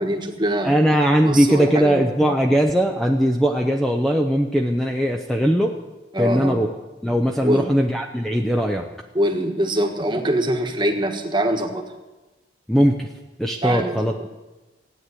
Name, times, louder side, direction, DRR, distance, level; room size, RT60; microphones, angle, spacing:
voice 1, 0.0-0.7 1.2-2.1 6.1-6.6 7.4-7.7 9.1-11.9 13.6-14.0, right 1 dB, 25° right, 3 dB, 1.5 m, -23 dB
voice 2, 0.6-5.8 6.2-6.7 7.0-8.9 12.7-13.1 13.4-14.2, equal, ahead, 2 dB, 0.8 m, -19 dB
16.0 x 9.4 x 8.4 m, 1.1 s
head